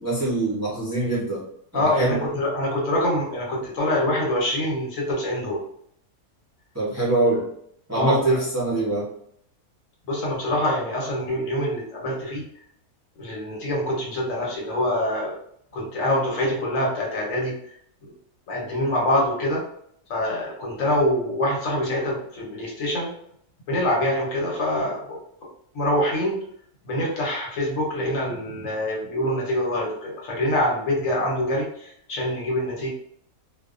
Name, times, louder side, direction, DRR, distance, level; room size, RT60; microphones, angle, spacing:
voice 1, 0.0-1.4 1.7-2.2 6.7-7.5 7.9-9.1, right 2 dB, 20° right, -8 dB, 0.4 m, -23 dB
voice 2, 1.7-5.6 7.9-8.4 10.1-12.4 13.2-15.3 15.7-17.7 18.5-19.6 20.1-23.1 23.7-25.2 25.7-26.3 26.8-32.9, left 1 dB, 65° left, -3 dB, 1.1 m, -25 dB
2.5 x 2.1 x 2.4 m, 0.70 s
omnidirectional pair, 1.5 m